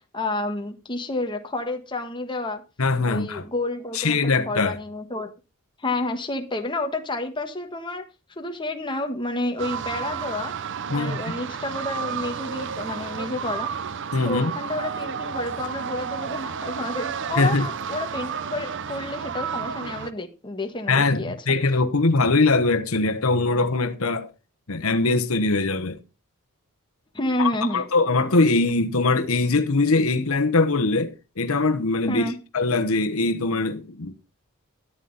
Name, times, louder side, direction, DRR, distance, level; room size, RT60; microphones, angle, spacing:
voice 1, 0.0-2.6 3.0-5.3 5.8-8.1 8.4-10.5 10.9-13.7 14.2-21.4 27.1-27.8 32.1-32.4, left 2 dB, 20° left, 1.5 m, -30 dB
voice 2, 2.8-3.4 3.9-4.7 10.9-11.2 14.1-14.5 17.4-17.7 20.9-24.3 24.7-26.0 27.4-32.3 32.5-34.1, left 3 dB, 70° left, 1.1 m, -22 dB
sound 1, 9.6-20.1, right 7 dB, 60° right, 0.7 m, -31 dB
13.0 x 9.3 x 4.1 m
head